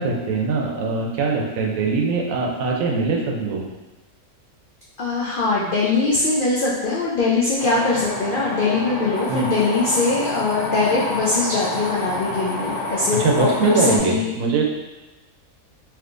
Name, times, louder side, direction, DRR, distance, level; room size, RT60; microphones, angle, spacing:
voice 1, 0.0-3.7 9.3-9.5 13.1-14.6, right 4 dB, 70° right, 0 dB, 1.0 m, -22 dB
voice 2, 5.0-14.3, left 3 dB, 80° left, -6 dB, 0.4 m, -21 dB
sound 1, 7.6-14.0, left 2 dB, 65° left, 0.9 m, -29 dB
3.5 x 2.8 x 2.5 m, 1.1 s
omnidirectional pair, 1.5 m